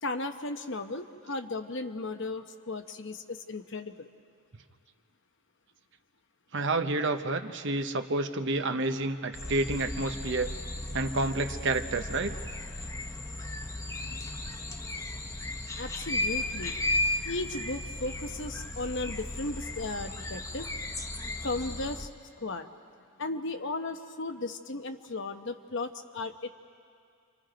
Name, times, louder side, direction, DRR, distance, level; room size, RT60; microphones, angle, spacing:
voice 1, 0.0-4.0 15.8-16.8 17.2-20.7 21.4-22.1 22.4-22.7 23.2-26.5, left 2 dB, 55° left, 7 dB, 1.0 m, -35 dB
voice 2, 6.5-10.5 10.9-12.3, right 2 dB, 55° right, 7 dB, 1.0 m, -29 dB
sound 1, 9.3-22.1, left 2 dB, 15° left, 0.8 m, -35 dB
29.0 x 25.0 x 5.2 m, 2.3 s
head